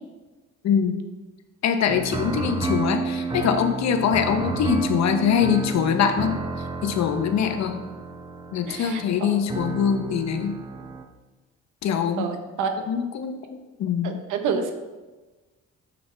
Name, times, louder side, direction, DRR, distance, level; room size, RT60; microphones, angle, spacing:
voice 1, 0.6-1.0 1.6-6.4 6.8-7.8 8.5-10.6 11.8-12.3 12.9-13.3 13.8-14.2, left 7 dB, 60° left, 7 dB, 0.8 m, -23 dB
sound 1, 1.9-11.0, right 4 dB, 15° right, 0.6 m, -31 dB
voice 2, 8.7-9.4 12.2-12.8 14.0-14.7, right 6 dB, 80° right, 6 dB, 0.8 m, -28 dB
6.3 x 5.9 x 3.3 m, 1.2 s
cardioid pair, 90°, 30 cm